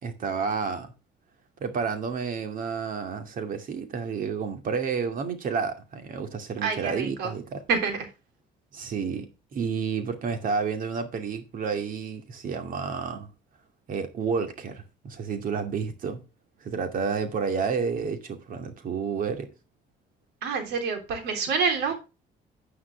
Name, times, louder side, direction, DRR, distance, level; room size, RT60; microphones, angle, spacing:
voice 1, 0.0-0.9 1.6-7.6 8.7-13.3 13.9-16.2 16.6-19.5, right 5 dB, 55° right, 2.4 m, -30 dB
voice 2, 6.6-7.3 7.7-8.1 20.4-21.9, right 5 dB, 80° right, 3.6 m, -27 dB
9.5 x 9.4 x 3.4 m
cardioid pair, 110°, 17 cm